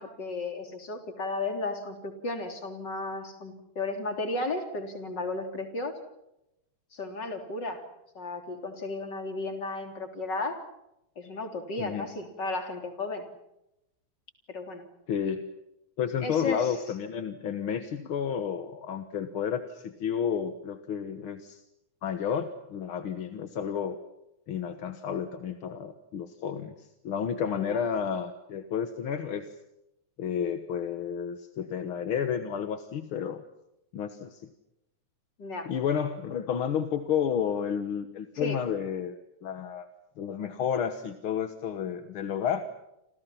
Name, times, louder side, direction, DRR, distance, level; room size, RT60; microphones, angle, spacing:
voice 1, 0.0-6.0 6.9-7.8 8.2-10.6 11.2-13.2 14.5-14.9 16.2-16.8 27.5-27.8 35.4-35.7 38.3-38.6, left 2 dB, 35° left, 6 dB, 4.0 m, -34 dB
voice 2, 15.1-15.5 16.0-21.6 22.0-24.0 24.5-29.5 30.2-33.4 33.9-34.5 35.7-39.2 39.4-39.9 40.2-42.6, left 8 dB, 55° left, 9 dB, 1.8 m, -31 dB
29.5 x 27.0 x 5.8 m, 0.86 s
omnidirectional pair, 3.4 m